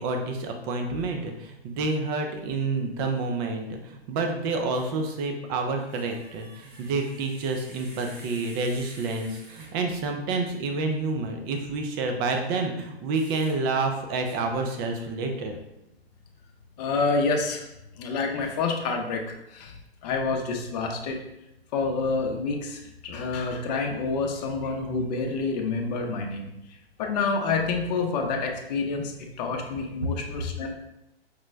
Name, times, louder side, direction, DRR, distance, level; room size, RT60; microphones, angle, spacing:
voice 1, 0.0-15.5, right 3 dB, 20° right, 3 dB, 0.4 m, -29 dB
sound 1, 4.7-5.0 5.8-10.0 13.1-13.6 14.3-14.4, right 2 dB, 55° right, 1.2 m, -50 dB
voice 2, 16.8-17.7 17.9-21.2 21.7-30.7, left 4 dB, 40° left, 3 dB, 0.7 m, -28 dB
5.2 x 2.1 x 3.2 m, 0.88 s
hypercardioid pair, 125°, 32 cm